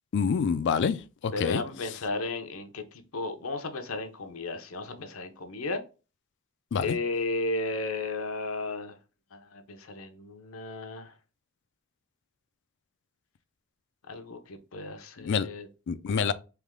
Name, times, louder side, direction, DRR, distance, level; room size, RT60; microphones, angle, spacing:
voice 1, 0.1-1.0 1.2-1.6 6.7-7.0 15.2-15.5 15.9-16.3, left 6 dB, 55° left, 0.4 m, -26 dB
voice 2, 1.3-5.8 6.8-9.0 9.3-11.1 14.1-15.7 16.1-16.3, left 3 dB, 75° left, 0.7 m, -34 dB
3.4 x 3.1 x 3.6 m
head